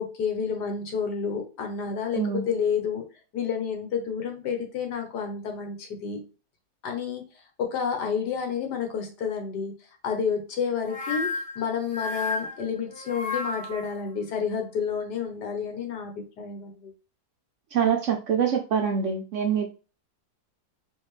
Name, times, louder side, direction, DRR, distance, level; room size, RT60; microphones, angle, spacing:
voice 1, 0.0-3.0 3.3-6.2 6.8-7.2 7.6-9.7 10.0-11.3 11.5-16.9, left 6 dB, 85° left, 3 dB, 1.7 m, -30 dB
voice 2, 2.1-2.5 17.7-19.7, right 7 dB, 65° right, 4 dB, 0.7 m, -25 dB
sound 1, 10.8-13.9, left 3 dB, 5° left, 0.7 m, -32 dB
4.7 x 3.3 x 3.1 m, 0.34 s
omnidirectional pair, 1.7 m